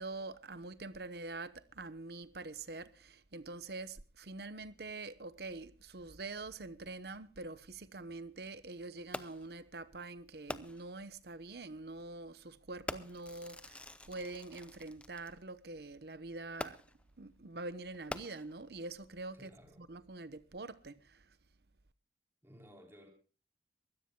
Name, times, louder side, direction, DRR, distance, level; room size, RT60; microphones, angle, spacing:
voice 1, 0.0-16.8 17.2-19.5 19.8-21.2, right 3 dB, 60° right, 1.0 m, -45 dB
Fireworks, 9.1-9.6 10.5-11.0 11.9-12.0 12.9-15.3 16.6-17.1 17.9-18.8 19.5-19.6, left 1 dB, 5° left, 0.7 m, -45 dB
voice 2, 19.3-19.8 22.4-23.1, equal, 15° right, 3.6 m, -57 dB
23.5 x 17.0 x 2.2 m
head